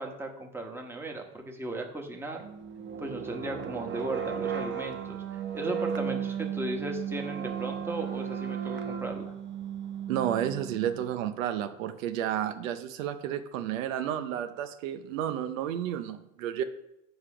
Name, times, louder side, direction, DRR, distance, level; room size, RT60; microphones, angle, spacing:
voice 1, 0.0-2.4 3.0-9.3, right 1 dB, 5° right, 2 dB, 1.1 m, -36 dB
sound 1, 2.4-11.2, right 8 dB, 30° right, 0.7 m, -35 dB
voice 2, 10.1-16.6, right 10 dB, 90° right, 9 dB, 0.8 m, -31 dB
8.2 x 4.9 x 5.0 m, 0.83 s
supercardioid pair, 115°, 39 cm